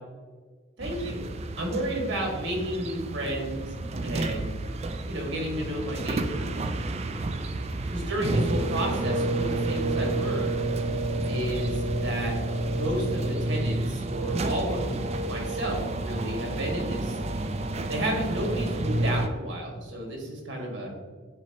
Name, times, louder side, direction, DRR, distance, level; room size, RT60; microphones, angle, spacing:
sound 1, 0.8-19.3, right 2 dB, 30° right, 0.4 m, -30 dB
voice 1, 0.8-1.2 1.6-3.8 4.0-4.5 5.1-6.5 7.9-10.6 11.3-12.3 12.7-17.2 17.9-20.9, right 1 dB, 60° right, -1 dB, 2.0 m, -32 dB
10.0 x 4.5 x 3.0 m, 1.5 s
head